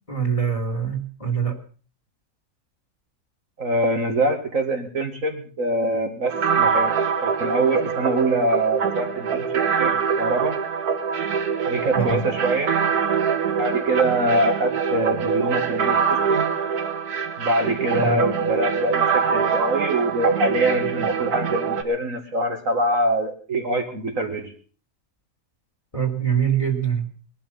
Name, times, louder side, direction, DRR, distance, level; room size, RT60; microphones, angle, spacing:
voice 1, 0.1-1.6 11.9-12.2 17.9-18.2 25.9-27.1, right 7 dB, 20° left, 4 dB, 2.3 m, -24 dB
voice 2, 3.6-6.9 7.2-9.9 10.2-10.6 11.6-12.8 13.6-16.5 17.4-24.5, right 1 dB, 60° right, 4 dB, 2.3 m, -24 dB
Female Robot in Heat, 6.3-21.8, right 6 dB, 75° right, 2.0 m, -24 dB
20.5 x 12.0 x 5.5 m, 0.41 s
omnidirectional pair, 1.6 m